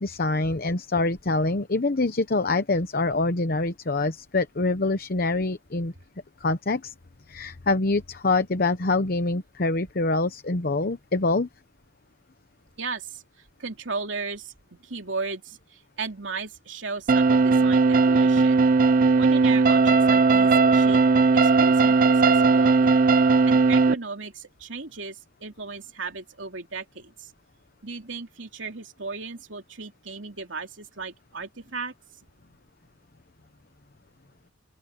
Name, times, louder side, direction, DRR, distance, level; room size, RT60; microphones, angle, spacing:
voice 1, 0.0-5.9 6.4-6.9 7.3-11.5, left 3 dB, 50° left, 0.9 m, -25 dB
voice 2, 12.8-13.2 13.6-18.7 19.2-21.0 21.4-22.9 23.2-27.3 27.8-31.9, right 4 dB, 80° right, 2.9 m, -36 dB
sound 1, 17.1-23.9, right 4 dB, 45° right, 0.4 m, -18 dB
open air
head